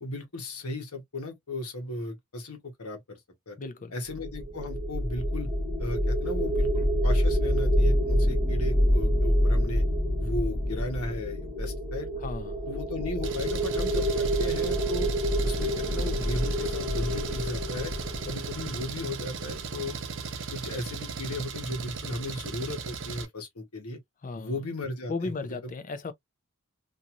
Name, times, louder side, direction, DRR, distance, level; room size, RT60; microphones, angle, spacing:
voice 1, 0.0-3.2 3.5-3.6 3.9-5.5 5.8-9.8 10.2-12.1 12.7-15.1 15.4-17.9 18.2-20.0 20.5-24.0 24.3-25.3, left 1 dB, 80° left, 1.0 m, -36 dB
voice 2, 3.6-3.9 12.2-12.6 24.2-24.5 25.1-26.1, left 3 dB, 35° left, 0.5 m, -35 dB
sound 1, 4.1-19.2, equal, ahead, 1.0 m, -27 dB
Engine, 13.2-23.3, right 5 dB, 60° right, 0.7 m, -36 dB
2.8 x 2.6 x 2.4 m
head